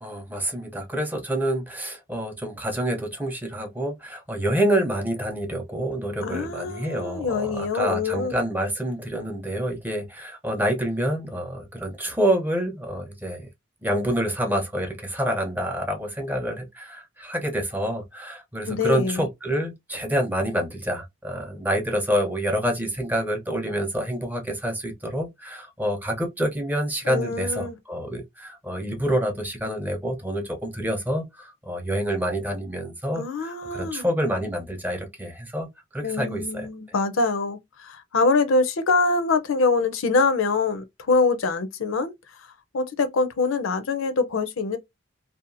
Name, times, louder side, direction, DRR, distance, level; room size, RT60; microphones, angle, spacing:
voice 1, 0.0-13.5 13.8-35.7 35.9-36.7, equal, 10° right, 0.5 m, -27 dB
voice 2, 6.2-8.4 18.7-19.2 27.0-27.8 33.2-34.0 36.0-42.1 42.7-44.8, left 3 dB, 85° left, 0.5 m, -24 dB
2.7 x 2.2 x 2.5 m
head